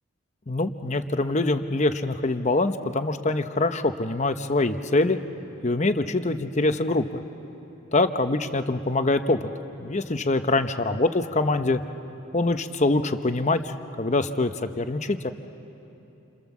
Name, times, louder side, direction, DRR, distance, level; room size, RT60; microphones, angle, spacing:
voice 1, 0.5-5.2 5.6-7.2 7.9-9.5 9.8-11.8 12.3-15.3, left 2 dB, 35° left, 9 dB, 0.9 m, -24 dB
29.0 x 27.0 x 7.3 m, 3.0 s
head